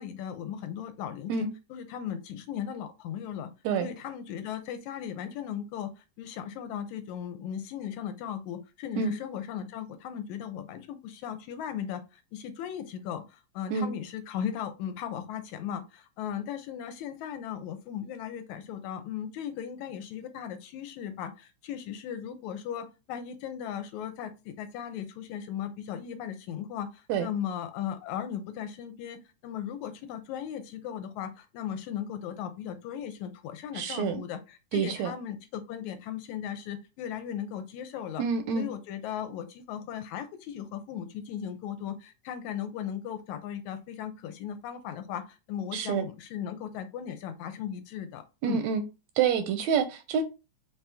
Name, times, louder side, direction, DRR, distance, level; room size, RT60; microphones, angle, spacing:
voice 1, 0.0-3.5 3.8-38.2 38.5-48.6, left 9 dB, 75° left, 1.9 m, -37 dB
voice 2, 33.7-34.2 34.7-35.1 38.2-38.6 45.7-46.1 48.4-48.8 49.2-50.2, right 6 dB, 80° right, 1.7 m, -27 dB
5.3 x 3.0 x 3.4 m
omnidirectional pair, 3.5 m